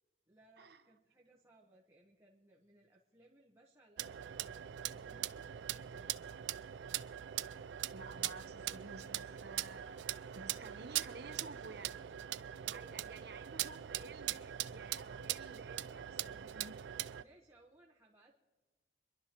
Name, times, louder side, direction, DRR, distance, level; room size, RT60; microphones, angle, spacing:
voice 1, 0.3-6.3 12.6-13.5 15.0-15.3 17.2-18.3, right 1 dB, 15° right, 1.1 m, -65 dB
sound 1, 4.0-17.2, right 12 dB, 85° right, 0.4 m, -41 dB
voice 2, 7.9-10.0 10.3-12.0 12.7-16.8, right 3 dB, 65° right, 1.0 m, -52 dB
26.5 x 11.5 x 3.0 m
head